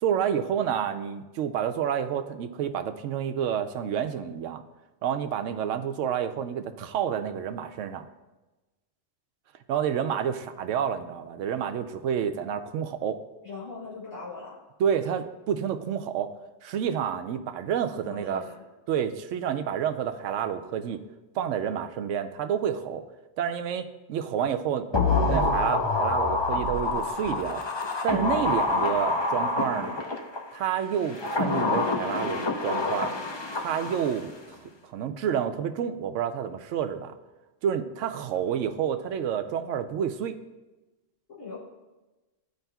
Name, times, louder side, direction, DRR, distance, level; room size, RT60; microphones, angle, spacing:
voice 1, 0.0-4.6 5.0-8.1 9.7-13.2 14.8-16.3 16.6-18.4 18.9-21.0 21.3-23.0 23.4-24.9 25.3-27.6 28.0-30.0 30.5-33.1 33.5-37.1 37.6-40.3, right 8 dB, 80° right, 8 dB, 0.9 m, -29 dB
voice 2, 13.4-14.6 17.9-18.6 41.3-41.6, left 4 dB, 90° left, -7 dB, 2.1 m, -40 dB
sound 1, 24.9-30.4 31.0-34.3 34.5-34.6, left 3 dB, 30° left, 0.5 m, -27 dB
13.5 x 4.9 x 2.3 m, 1.1 s
omnidirectional pair, 1.3 m